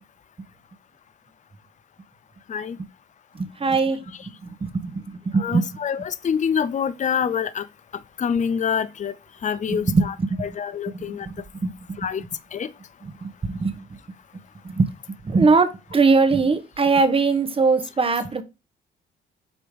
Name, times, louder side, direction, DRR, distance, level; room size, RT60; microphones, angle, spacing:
voice 1, 3.3-4.0 4.6-5.7 9.7-10.5 10.9-11.4 11.6-12.0 13.0-14.0 14.6-14.9 15.2-18.4, right 4 dB, 30° right, 1.1 m, -21 dB
voice 2, 5.4-7.6 8.2-9.1 9.4-10.1 10.4-11.3 12.0-12.2 12.5-12.7, left 7 dB, 40° left, 0.6 m, -25 dB
8.2 x 3.0 x 5.1 m
cardioid pair, 90°, 20 cm